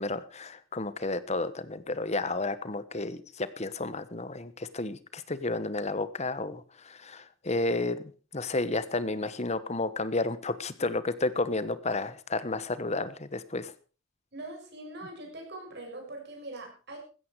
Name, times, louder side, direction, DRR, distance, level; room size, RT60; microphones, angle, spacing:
voice 1, 0.0-13.7, left 2 dB, 35° left, 15 dB, 1.2 m, -32 dB
voice 2, 14.3-17.0, right 2 dB, 55° right, 2 dB, 7.0 m, -42 dB
16.0 x 13.5 x 4.7 m, 0.36 s
head